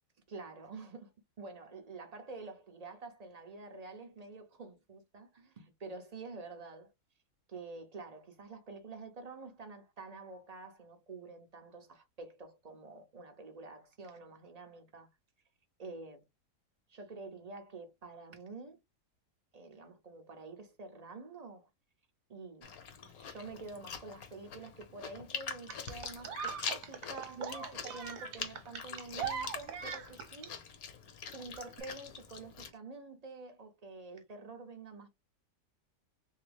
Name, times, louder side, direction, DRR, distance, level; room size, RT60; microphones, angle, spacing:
voice 1, 0.3-1.1 1.4-6.9 7.5-15.1 15.8-16.2 16.9-18.8 19.5-21.7 22.3-22.7 23.0-30.6 31.3-35.1, right 3 dB, 45° right, 0.5 m, -48 dB
Chewing mastication, 22.6-32.7, left 6 dB, 70° left, 1.2 m, -44 dB
sound 1, 25.7-30.5 31.7-31.8, right 7 dB, 65° right, 1.1 m, -40 dB
3.4 x 2.8 x 3.3 m
omnidirectional pair, 1.7 m